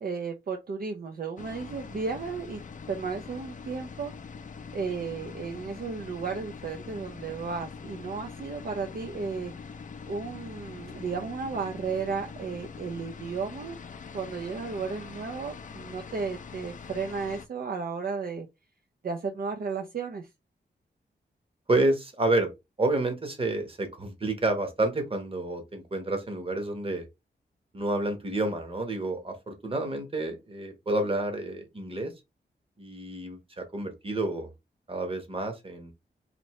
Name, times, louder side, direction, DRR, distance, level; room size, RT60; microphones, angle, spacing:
voice 1, 0.0-2.6 2.9-4.1 4.7-9.5 10.1-13.8 14.1-18.5 19.0-20.3, right 5 dB, 55° right, 0.5 m, -34 dB
sound 1, 1.4-17.5, left 5 dB, 45° left, 0.4 m, -43 dB
voice 2, 21.7-22.5 22.8-27.0 27.7-32.1 32.8-34.5 34.9-35.9, right 2 dB, 30° right, 1.0 m, -29 dB
4.3 x 2.7 x 3.1 m
wide cardioid pair, 145°, 18 cm